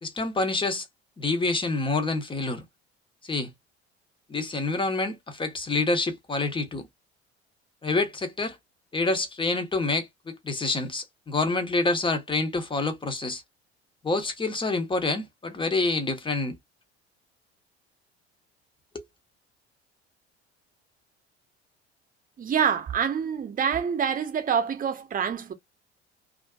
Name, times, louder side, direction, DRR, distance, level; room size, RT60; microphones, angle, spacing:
voice 1, 0.0-0.9 1.2-2.6 3.2-3.5 4.3-6.8 7.8-8.6 8.9-13.4 14.0-16.6 18.9-19.1, left 3 dB, 15° left, 0.8 m, -27 dB
voice 2, 22.4-25.5, right 7 dB, 25° right, 0.8 m, -26 dB
2.4 x 2.4 x 2.3 m
figure-of-eight pair, 60°, 33 cm